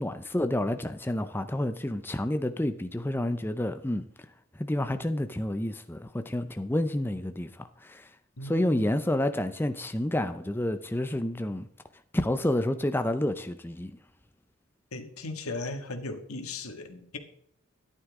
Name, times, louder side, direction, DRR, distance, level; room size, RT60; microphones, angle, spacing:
voice 1, 0.0-4.1 4.6-8.1 8.4-11.7 12.1-13.9, left 1 dB, 10° left, 0.5 m, -29 dB
voice 2, 8.4-8.9 14.9-17.2, left 2 dB, 90° left, 1.8 m, -37 dB
13.0 x 11.0 x 3.6 m
head